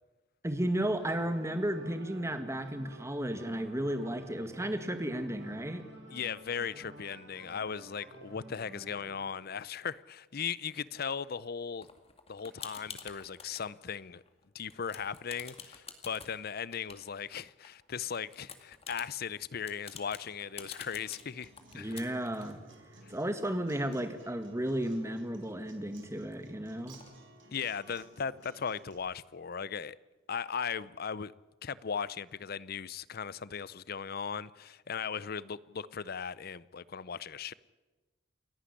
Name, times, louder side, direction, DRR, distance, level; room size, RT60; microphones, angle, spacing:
voice 1, 0.4-5.8 21.7-22.6 23.1-27.0, right 1 dB, 15° right, 1.9 m, -33 dB
sound 1, 1.0-9.3, right 1 dB, 65° right, 5.5 m, -51 dB
voice 2, 6.1-11.9 12.3-14.2 14.5-22.0 27.5-30.0 30.3-31.3 31.6-37.5, left 7 dB, 55° left, 0.6 m, -38 dB
sound 2, 11.8-13.7 14.1-14.4 14.7-17.7 18.1-24.3 24.6-24.7 24.9-26.4 26.9-27.1, left 6 dB, 30° left, 2.1 m, -49 dB
Acoustic guitar, 21.0-28.9, right 1 dB, 80° right, 4.5 m, -56 dB
28.5 x 11.5 x 9.9 m
head